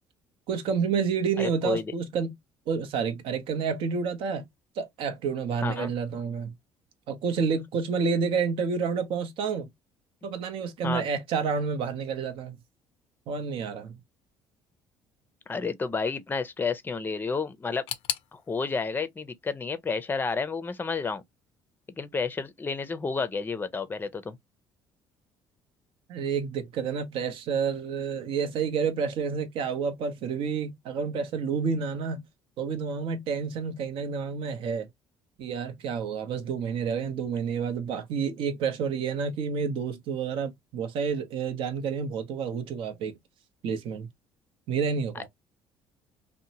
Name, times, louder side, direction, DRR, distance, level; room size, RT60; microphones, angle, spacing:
voice 1, 0.5-2.3 2.7-4.5 4.8-6.5 7.1-9.7 10.2-12.6 13.3-13.9 26.1-32.2 32.6-34.9 35.4-43.1 43.6-44.1 44.7-45.3, right 6 dB, 70° right, 0.7 m, -29 dB
voice 2, 1.4-1.9 5.6-5.9 10.8-11.0 15.5-17.8 18.3-21.2 22.0-24.4 45.2-45.3, left 4 dB, 20° left, 0.5 m, -30 dB
sound 1, 17.9-20.7 21.0-21.8 22.1-22.2 23.1-23.2, left 12 dB, 80° left, 0.4 m, -39 dB
2.8 x 2.1 x 2.7 m
supercardioid pair, 80°, 9 cm